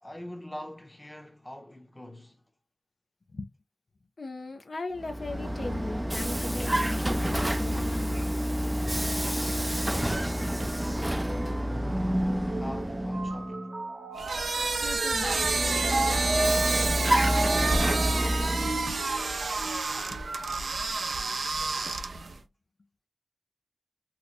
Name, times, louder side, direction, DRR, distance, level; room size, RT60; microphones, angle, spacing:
voice 1, 0.0-2.4 9.8-11.1 11.9-13.8 18.7-18.9, left 1 dB, 20° left, 0.7 m, -45 dB
voice 2, 4.2-8.2 14.8-15.5 20.1-20.2, left 3 dB, 70° left, 0.4 m, -39 dB
Vehicle, 4.9-13.5 15.1-19.0, equal, 20° right, 0.3 m, -29 dB
sound 1, 8.8-20.6, right 1 dB, 65° right, 0.8 m, -35 dB
sound 2, 14.2-22.4, right 3 dB, 85° right, 0.4 m, -29 dB
3.0 x 2.1 x 4.0 m
wide cardioid pair, 55°, 0 cm